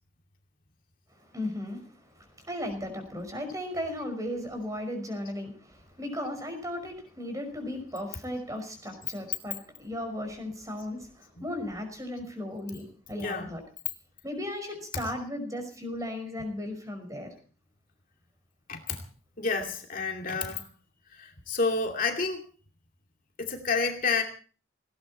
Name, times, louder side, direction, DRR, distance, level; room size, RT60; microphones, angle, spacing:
voice 1, 1.1-13.6 14.2-17.3, left 1 dB, 15° right, 6 dB, 5.5 m, -36 dB
voice 2, 13.1-13.5 14.9-15.1 18.7-19.0 19.4-20.7 21.1-22.5 23.4-24.2, left 4 dB, 45° left, 3 dB, 2.5 m, -30 dB
19.0 x 17.5 x 4.3 m, 0.40 s
head